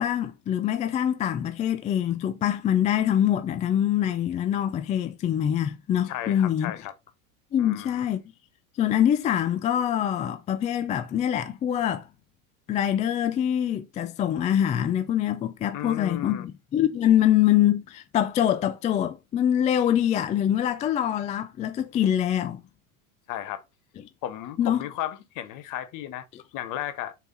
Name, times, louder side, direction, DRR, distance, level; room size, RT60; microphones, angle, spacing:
voice 1, 0.0-6.7 7.5-8.2 8.8-12.1 12.7-22.6 24.6-24.8 26.3-26.4, left 10 dB, 20° left, 0.3 m, -24 dB
voice 2, 6.1-6.9 7.6-8.1 15.7-16.4 23.3-23.6 24.2-26.2 26.5-27.2, left 12 dB, 45° left, 1.1 m, -34 dB
5.5 x 4.5 x 3.8 m
supercardioid pair, 125°, 43 cm